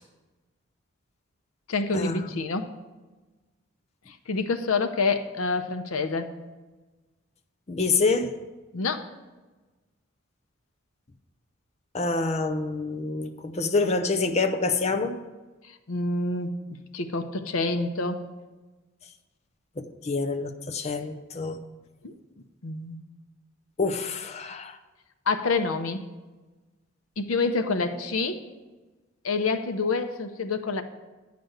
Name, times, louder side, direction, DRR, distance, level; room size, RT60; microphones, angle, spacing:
voice 1, 1.7-2.7 4.1-6.3 8.7-9.0 15.6-16.6 16.9-18.3 22.0-22.1 22.6-23.0 25.3-26.0 27.2-28.4 29.2-30.8, left 3 dB, 85° left, 0.7 m, -27 dB
voice 2, 7.7-8.3 11.9-15.2 19.8-21.6 23.8-24.8, left 3 dB, 30° left, 0.6 m, -27 dB
9.3 x 5.2 x 7.9 m
head